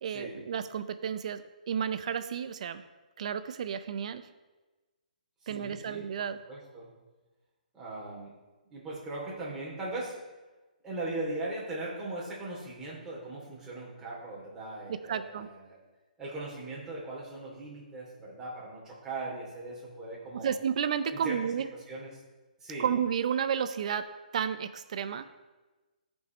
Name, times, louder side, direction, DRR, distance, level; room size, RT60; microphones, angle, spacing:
voice 1, 0.0-2.8 3.2-4.2 5.5-6.4 14.9-15.5 20.4-21.7 22.8-25.3, right 8 dB, 50° right, 12 dB, 0.5 m, -32 dB
voice 2, 5.4-6.0 6.5-6.9 7.7-8.3 8.7-10.2 10.8-15.8 16.2-20.5 21.1-21.4 21.9-22.1 22.6-22.9, right 2 dB, 10° right, -6 dB, 2.7 m, -39 dB
15.0 x 5.3 x 3.1 m, 1.2 s
figure-of-eight pair, 135°, 5 cm